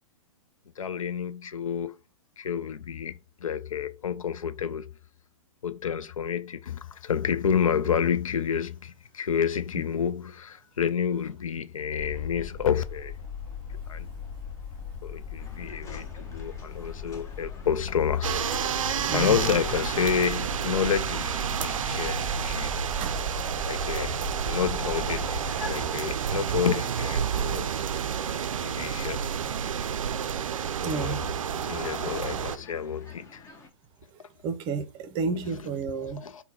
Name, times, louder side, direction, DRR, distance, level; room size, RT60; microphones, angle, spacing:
voice 1, 0.8-2.0 2.4-4.9 5.6-13.2 13.9-14.1 15.0-18.8 19.1-22.7 23.7-24.2 24.4-27.8 28.6-29.3 30.8-31.2 31.6-33.4 34.2-34.3 35.3-35.4 36.0-36.4, left 8 dB, 80° left, 0.4 m, -29 dB
sound 1, 12.0-25.6, left 5 dB, 40° left, 1.0 m, -39 dB
sound 2, 15.4-33.7, left 4 dB, 15° left, 0.7 m, -47 dB
sound 3, 18.2-32.6, right 8 dB, 75° right, 0.4 m, -30 dB
voice 2, 30.8-31.2 34.4-36.2, right 5 dB, 30° right, 0.6 m, -31 dB
3.7 x 2.2 x 4.1 m
hypercardioid pair, 120°, 17 cm